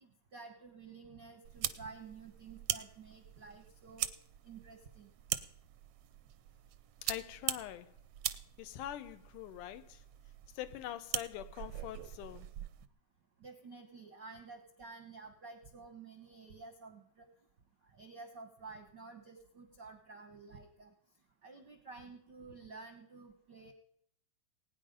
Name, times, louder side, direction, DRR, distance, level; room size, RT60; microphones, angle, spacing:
voice 1, 0.0-4.1 4.4-5.1 13.4-17.3 17.9-20.9 21.4-23.7, right 4 dB, 65° right, 1.1 m, -51 dB
sound 1, 1.4-12.9, right 12 dB, 80° right, 1.4 m, -42 dB
voice 2, 7.0-7.9 8.6-10.0 10.6-12.5, left 12 dB, 85° left, 2.4 m, -44 dB
21.0 x 9.6 x 5.2 m
omnidirectional pair, 3.6 m